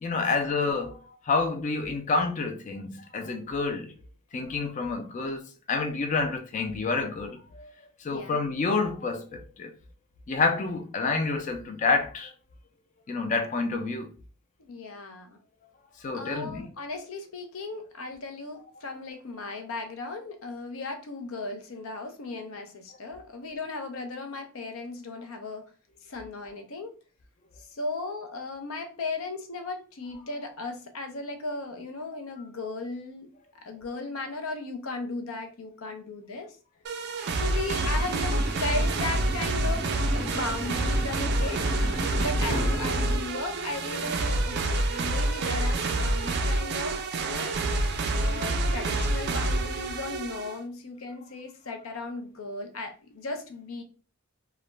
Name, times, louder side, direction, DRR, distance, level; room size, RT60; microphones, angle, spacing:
voice 1, 0.0-1.0 1.3-3.9 4.3-5.4 5.7-7.7 8.0-9.7 10.3-12.3 13.1-14.1 16.0-16.7 37.2-37.3, left 4 dB, 35° left, 0.4 m, -28 dB
voice 2, 14.6-15.4 16.1-25.6 26.0-26.9 27.6-33.3 33.6-36.6 37.4-41.8 42.2-47.6 48.1-53.8, left 3 dB, 90° left, 0.6 m, -36 dB
sound 1, 36.8-50.6, right 2 dB, 55° right, 0.3 m, -27 dB
Subway metro underground, 37.7-43.1, equal, 60° left, 1.3 m, -34 dB
2.4 x 2.1 x 3.0 m
head